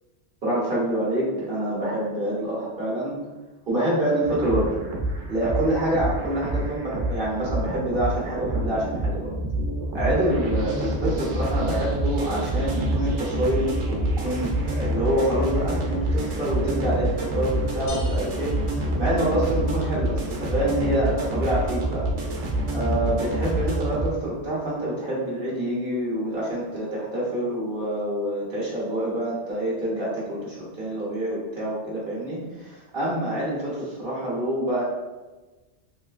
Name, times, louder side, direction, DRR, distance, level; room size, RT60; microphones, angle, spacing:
voice 1, 0.4-3.2 3.7-4.8 5.3-9.3 9.9-22.1 22.7-34.8, right 1 dB, 55° right, -7 dB, 1.0 m, -26 dB
sound 1, 4.2-24.1, right 1 dB, 90° right, 1.0 m, -27 dB
sound 2, 17.9-19.7, left 2 dB, 80° left, 0.9 m, -43 dB
3.1 x 3.1 x 2.4 m, 1.2 s
omnidirectional pair, 1.2 m